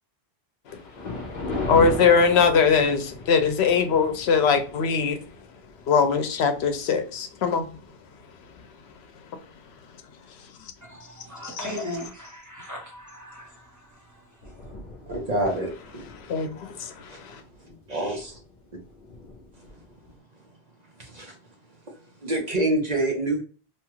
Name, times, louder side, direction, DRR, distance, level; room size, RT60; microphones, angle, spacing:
Thunder, 0.7-9.2 9.7-10.0 10.7-10.8 11.1-11.2 13.4-13.6 13.9-14.0 14.2-20.2, left 3 dB, 50° left, 0.8 m, -39 dB
voice 1, 1.7-5.2 5.9-7.7 11.4-11.6 16.2-17.4, left 5 dB, 85° left, 0.8 m, -21 dB
voice 2, 10.8-14.7, left 1 dB, 20° right, 1.0 m, -38 dB
voice 3, 15.1-16.1 17.1-17.2 17.9-18.4 21.0-21.4 21.9-23.4, right 1 dB, 45° right, 0.8 m, -27 dB
2.9 x 2.3 x 3.0 m
omnidirectional pair, 1.1 m